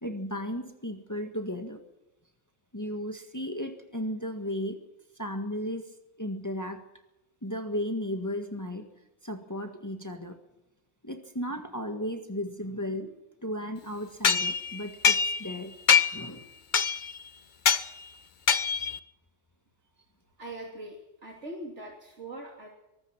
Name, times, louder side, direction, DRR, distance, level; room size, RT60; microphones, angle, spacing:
voice 1, 0.0-1.8 2.7-4.8 5.2-6.8 7.4-8.9 9.2-10.4 11.0-13.1 13.4-15.8 16.1-16.5, equal, 15° left, 5 dB, 1.7 m, -35 dB
sound 1, 14.2-15.6 15.9-16.3 16.7-17.2 17.7-17.9 18.5-19.0, left 6 dB, 45° left, 0.9 m, -24 dB
voice 2, 20.4-22.7, right 1 dB, 80° right, -1 dB, 3.4 m, -41 dB
23.5 x 20.0 x 6.0 m, 0.96 s
omnidirectional pair, 1.2 m